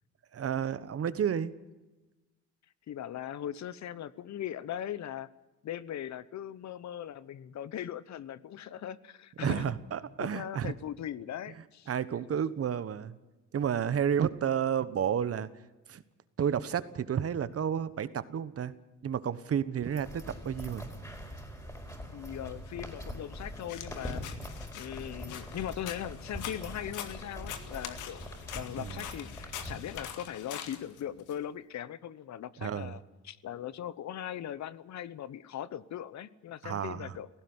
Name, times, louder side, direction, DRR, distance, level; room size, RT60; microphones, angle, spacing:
voice 1, 0.3-1.5 9.4-10.7 11.9-13.1 13.5-15.5 15.9-16.0 16.4-18.7 19.0-20.9 28.8-29.0 32.6-32.9 36.6-37.1, right 8 dB, 50° right, 15 dB, 1.3 m, -31 dB
voice 2, 2.9-5.3 5.6-9.6 10.2-11.9 22.1-24.3 24.7-28.2 28.5-37.3, left 10 dB, 65° left, 18 dB, 1.0 m, -39 dB
sound 1, 19.8-30.0, equal, 10° left, 5.2 m, -43 dB
sound 2, 23.7-31.3, left 9 dB, 90° left, 2.0 m, -44 dB
18.0 x 15.0 x 9.7 m, 1.1 s
cardioid pair, 90°, 30 cm